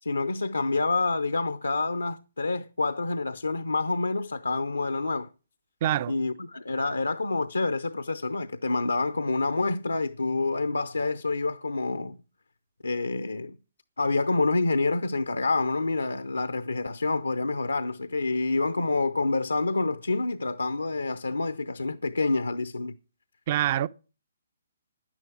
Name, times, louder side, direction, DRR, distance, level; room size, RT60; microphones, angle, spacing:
voice 1, 0.0-5.3 6.1-12.2 12.8-13.6 14.0-23.0, left 3 dB, 85° left, 0.6 m, -27 dB
voice 2, 5.8-6.1 23.5-23.9, right 12 dB, 40° right, 0.5 m, -25 dB
10.5 x 10.0 x 6.0 m
figure-of-eight pair, 130°, 0 cm